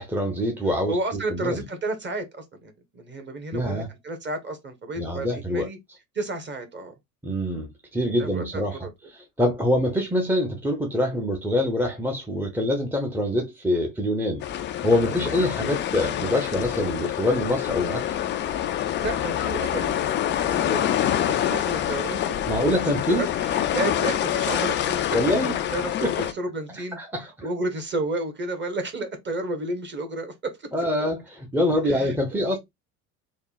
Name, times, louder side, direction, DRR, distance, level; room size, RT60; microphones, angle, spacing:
voice 1, 0.0-1.6 3.5-3.9 4.9-5.7 7.2-14.4 14.8-18.2 22.5-23.2 25.1-25.5 26.0-26.1 26.7-27.5 30.7-32.6, left 1 dB, 5° right, 0.8 m, -25 dB
voice 2, 0.9-5.8 6.1-6.9 8.2-8.9 15.1-15.3 19.0-22.2 23.1-27.0 27.4-30.7 31.8-32.6, right 2 dB, 25° right, 1.3 m, -32 dB
sound 1, 14.4-26.3, left 11 dB, 25° left, 0.4 m, -26 dB
3.6 x 2.2 x 3.9 m
hypercardioid pair, 70°, 45 cm